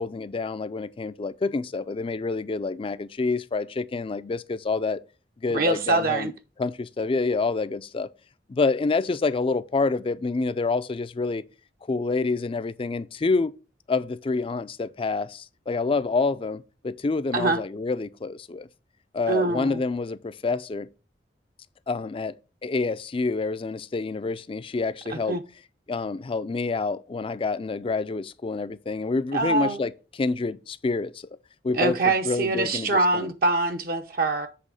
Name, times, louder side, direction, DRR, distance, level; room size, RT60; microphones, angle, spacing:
voice 1, 0.0-5.0 5.4-6.3 6.6-8.1 8.5-11.4 11.9-13.5 13.9-18.7 19.1-20.9 21.9-22.3 22.6-25.4 25.9-31.3 31.6-33.3, left 3 dB, 30° left, 0.4 m, -27 dB
voice 2, 5.5-6.3 17.3-17.6 19.3-19.8 25.1-25.4 29.3-29.8 31.7-34.5, right 3 dB, 55° right, 0.8 m, -24 dB
7.6 x 3.5 x 6.3 m
head